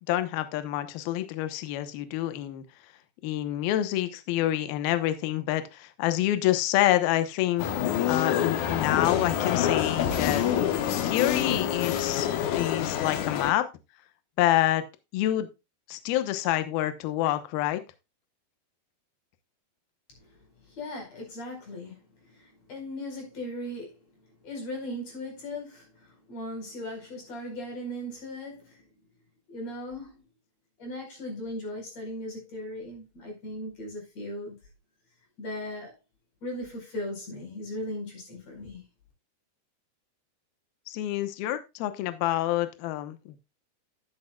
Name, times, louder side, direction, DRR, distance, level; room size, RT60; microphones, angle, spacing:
voice 1, 0.1-2.6 3.2-10.4 11.0-12.3 12.5-13.6 14.4-14.8 15.1-15.5 15.9-17.8 40.9-43.4, left 14 dB, 70° left, 2.6 m, -27 dB
sound 1, 7.6-13.5, left 9 dB, 85° left, 1.7 m, -27 dB
voice 2, 20.7-24.0 24.4-28.8 29.5-30.2 30.8-34.6 35.4-35.9 36.4-38.8, left 1 dB, 40° left, 5.7 m, -38 dB
12.5 x 9.5 x 2.3 m
omnidirectional pair, 5.0 m